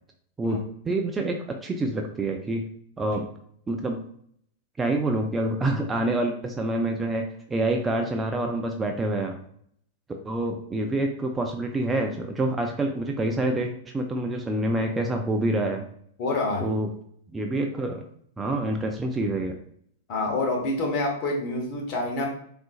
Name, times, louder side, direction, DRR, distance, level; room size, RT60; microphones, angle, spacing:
voice 1, 0.9-2.6 3.0-3.3 3.7-4.0 4.8-9.4 10.2-15.8 16.6-16.9 17.3-18.0 18.4-19.5, right 1 dB, 15° right, 3 dB, 0.4 m, -27 dB
voice 2, 16.2-16.7 20.1-22.3, left 2 dB, 40° left, 0 dB, 0.9 m, -27 dB
3.6 x 2.5 x 2.3 m, 0.65 s
figure-of-eight pair, 100°, 0 cm